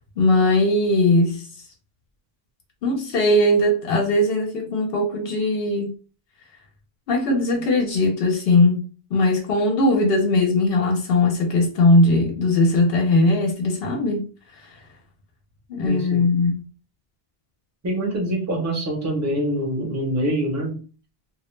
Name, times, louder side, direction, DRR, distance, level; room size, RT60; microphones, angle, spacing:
voice 1, 0.2-1.4 2.8-5.9 7.1-8.8 9.1-14.2 14.6-14.7 15.7-16.6, left 2 dB, 70° left, 0.8 m, -19 dB
voice 2, 15.8-16.3 17.8-20.8, right 1 dB, 20° right, 0.7 m, -25 dB
2.3 x 2.0 x 3.0 m
omnidirectional pair, 1.0 m